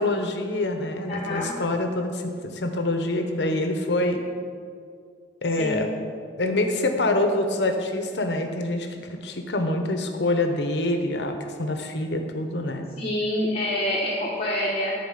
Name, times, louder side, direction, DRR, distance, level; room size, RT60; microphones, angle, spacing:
voice 1, 0.0-4.2 5.4-5.9 6.4-12.9, left 2 dB, 70° left, 5 dB, 1.0 m, -26 dB
voice 2, 1.1-1.5 5.6-5.9 13.0-14.9, left 1 dB, 35° left, -6 dB, 1.2 m, -26 dB
11.0 x 4.7 x 7.5 m, 2.2 s
head